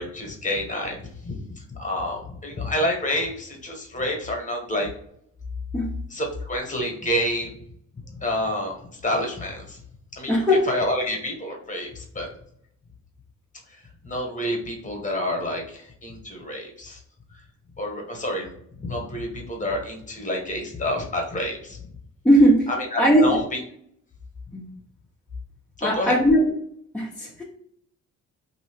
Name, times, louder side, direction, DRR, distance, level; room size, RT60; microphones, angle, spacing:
voice 1, 0.0-1.4 1.7-4.9 6.1-7.5 8.2-8.8 9.0-9.8 10.2-12.3 14.0-17.0 17.8-18.5 18.8-21.8 22.9-23.6 25.8-26.1, left 1 dB, 25° left, 1 dB, 1.2 m, -28 dB
voice 2, 10.3-10.6 22.2-22.7 23.0-23.4 24.5-24.7 25.8-26.6 26.9-27.4, equal, 5° left, -5 dB, 0.7 m, -18 dB
2.6 x 2.6 x 3.4 m, 0.67 s
cardioid pair, 90°, 30 cm